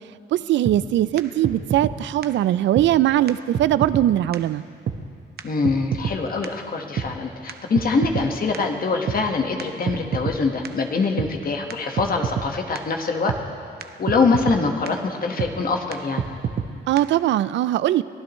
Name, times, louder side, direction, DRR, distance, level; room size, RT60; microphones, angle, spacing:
voice 1, 0.3-4.6 16.9-18.0, right 13 dB, 70° right, 17 dB, 0.4 m, -20 dB
sound 1, 0.6-0.8 1.2-1.3 1.4-1.9 2.2-2.3 2.7-2.9 3.3-3.4 3.5-4.1 4.3-4.4 4.9-5.0 5.4-5.5 5.6-6.2 6.4-6.5 7.0-7.1 7.5-8.3 8.5-8.6 9.1-9.2 9.6-9.7 9.9-10.4 10.6-10.7 11.2-11.3 11.7-11.8 12.0-12.5 12.7-12.8 13.3-13.4 13.8-13.9 14.1-14.6 14.9-15.0 15.4-15.5 15.9-16.0 16.2-16.7 17.0-17.1, right 7 dB, 50° right, 0.8 m, -26 dB
voice 2, 5.4-13.3 14.0-16.2, left 4 dB, 45° left, 2 dB, 1.5 m, -24 dB
23.0 x 15.0 x 3.1 m, 2.4 s
cardioid pair, 90°, 20 cm